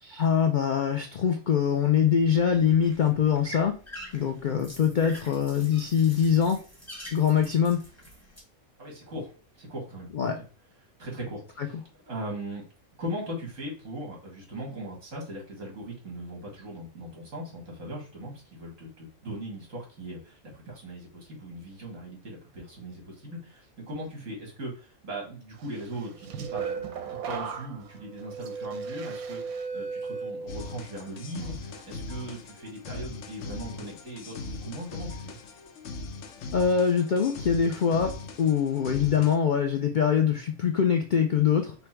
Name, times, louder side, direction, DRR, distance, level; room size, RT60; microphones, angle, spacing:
voice 1, 0.0-3.8 4.1-6.6 7.1-7.8 10.1-10.4 11.6-11.7 36.5-38.1 38.4-41.7, left 7 dB, 85° left, 5 dB, 0.4 m, -23 dB
sound 1, 2.2-8.4, equal, 10° left, 1.1 m, -46 dB
voice 2, 8.8-10.1 11.0-11.8 12.1-12.6 13.0-35.4, right 1 dB, 60° right, -2 dB, 2.4 m, -39 dB
sound 2, 25.9-31.0 31.4-31.8, right 5 dB, 85° right, 1.2 m, -36 dB
sound 3, 30.5-39.4, left 3 dB, 65° left, 0.9 m, -40 dB
5.4 x 2.2 x 4.4 m, 0.37 s
omnidirectional pair, 1.5 m